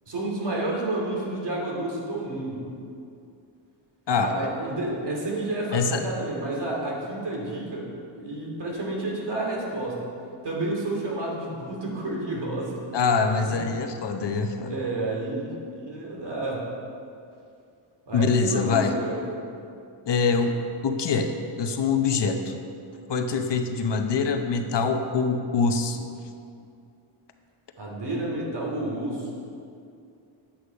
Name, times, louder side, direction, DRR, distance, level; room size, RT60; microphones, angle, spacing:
voice 1, 0.1-2.7 4.2-10.1 10.4-12.8 13.5-13.6 14.7-16.7 18.1-19.2 27.8-29.3, right 2 dB, 55° right, -3 dB, 2.7 m, -30 dB
voice 2, 5.7-6.0 12.9-14.8 18.1-19.0 20.1-20.6 20.8-22.5 23.1-26.1, left 4 dB, 55° left, 5 dB, 0.9 m, -24 dB
10.0 x 8.3 x 5.0 m, 2.5 s
wide cardioid pair, 110°, 49 cm